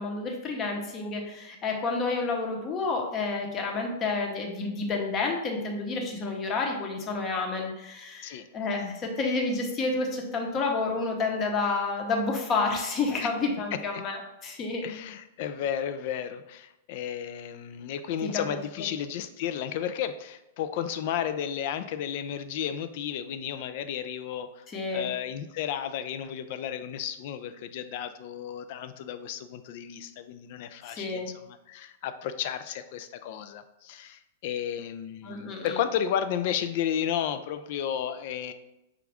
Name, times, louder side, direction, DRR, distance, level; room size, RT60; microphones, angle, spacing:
voice 1, 0.0-14.2 14.4-14.8 18.2-18.4 24.7-25.1 30.9-31.3 35.2-35.8, left 3 dB, 30° left, 1 dB, 0.8 m, -30 dB
voice 2, 14.8-24.6 24.9-38.5, left 9 dB, 55° left, 10 dB, 0.3 m, -33 dB
4.9 x 2.3 x 3.4 m, 0.92 s
hypercardioid pair, 110°, 0 cm